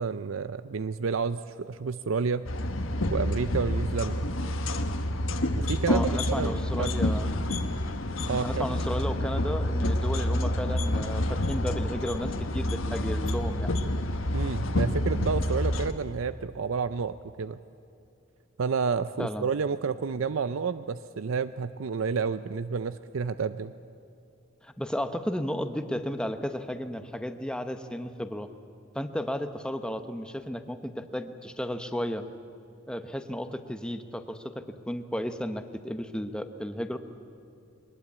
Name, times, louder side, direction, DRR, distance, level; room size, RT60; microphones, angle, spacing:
voice 1, 0.0-2.5 3.1-4.3 5.5-6.1 6.4-6.9 8.3-8.6 14.3-17.6 18.6-23.7, right 5 dB, 75° right, 13 dB, 0.5 m, -30 dB
sound 1, 2.4-15.9, left 1 dB, 70° left, 1.3 m, -28 dB
voice 2, 5.9-7.3 8.2-13.8 19.2-19.5 24.6-28.5 28.9-32.2 32.9-37.0, equal, 5° left, 8 dB, 0.9 m, -33 dB
22.0 x 20.0 x 8.6 m, 2.6 s
head